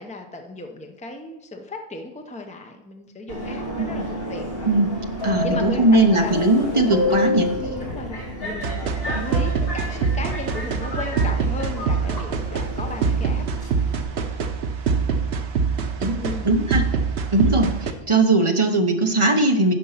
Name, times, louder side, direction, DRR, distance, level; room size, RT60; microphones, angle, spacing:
voice 1, 0.0-4.5 5.4-6.6 7.6-13.5 16.1-16.5, left 2 dB, 10° left, 4 dB, 0.7 m, -35 dB
Subway metro underground, 3.3-14.0, left 1 dB, 65° left, 1.9 m, -30 dB
voice 2, 5.2-7.5 16.0-16.2 16.4-16.8 17.3-19.7, right 2 dB, 30° right, 4 dB, 0.9 m, -19 dB
sound 1, 8.6-17.9, right 5 dB, 80° right, 1.1 m, -24 dB
9.7 x 5.4 x 5.7 m, 0.88 s
omnidirectional pair, 1.1 m